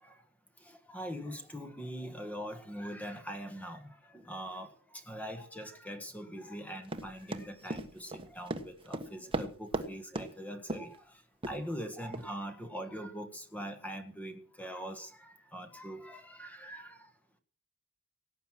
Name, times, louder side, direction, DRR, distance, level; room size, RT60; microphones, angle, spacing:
voice 1, 0.6-17.1, equal, 5° left, 8 dB, 1.5 m, -42 dB
Run, 6.9-9.9 10.1-10.3 10.7-11.0 11.4-11.6 12.1-12.2, right 2 dB, 25° right, 1.4 m, -36 dB
18.0 x 9.3 x 6.1 m, 0.43 s
head